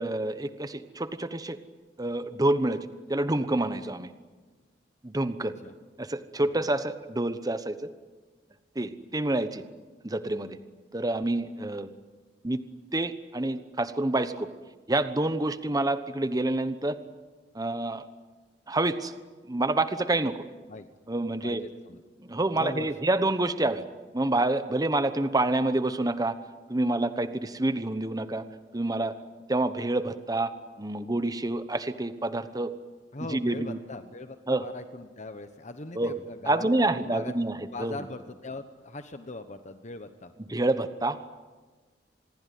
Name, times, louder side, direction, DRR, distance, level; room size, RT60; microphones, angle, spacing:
voice 1, 0.0-1.6 2.0-2.8 3.1-4.1 5.0-5.5 6.0-7.9 8.7-9.6 10.0-10.6 10.9-11.9 12.4-12.6 12.9-14.5 14.9-17.0 17.5-18.0 18.7-19.1 19.5-20.4 21.1-21.6 22.2-23.8 24.1-26.3 26.7-28.4 28.7-29.1 29.5-30.5 30.8-32.7 33.3-33.8 34.5-34.7 35.9-36.1 36.5-38.0 40.5-41.2, right 2 dB, 20° right, 11 dB, 1.1 m, -27 dB
voice 2, 5.4-5.7 6.4-6.7 20.7-20.9 21.4-22.0 22.5-22.9 33.1-37.4 37.7-40.3, left 2 dB, 40° left, 9 dB, 1.1 m, -40 dB
26.5 x 21.5 x 9.4 m, 1.3 s
head